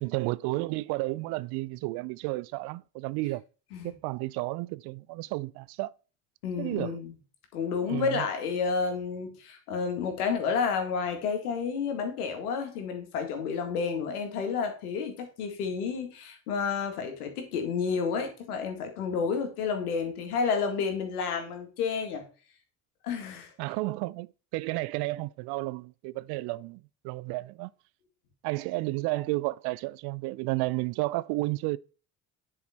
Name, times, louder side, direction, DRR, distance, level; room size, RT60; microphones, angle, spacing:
voice 1, 0.0-3.4 3.8-5.9 6.6-7.0 7.8-8.3 23.6-27.7 28.4-31.8, right 21 dB, 60° right, 0.5 m, -32 dB
voice 2, 6.4-7.1 7.5-22.2 23.0-23.5, left 5 dB, 80° left, 2.0 m, -30 dB
9.8 x 4.8 x 4.3 m
hypercardioid pair, 60°, 45 cm